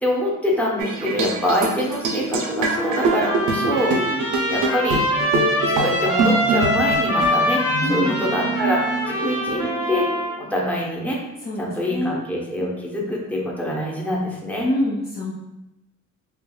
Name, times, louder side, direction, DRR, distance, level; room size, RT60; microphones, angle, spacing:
voice 1, 0.0-4.1 4.5-5.0 5.7-7.6 7.9-10.1 10.4-11.2 11.6-14.7, left 1 dB, 5° left, -3 dB, 0.8 m, -25 dB
sound 1, 0.8-10.2, right 3 dB, 85° right, 0.6 m, -25 dB
Trumpet, 2.7-10.3, equal, 80° left, 1.4 m, -24 dB
voice 2, 3.9-4.3 7.8-8.2 11.4-11.6 11.9-12.2 14.6-15.3, left 1 dB, 30° left, -4 dB, 0.6 m, -25 dB
3.6 x 3.0 x 2.3 m, 0.95 s
cardioid pair, 90°, 30 cm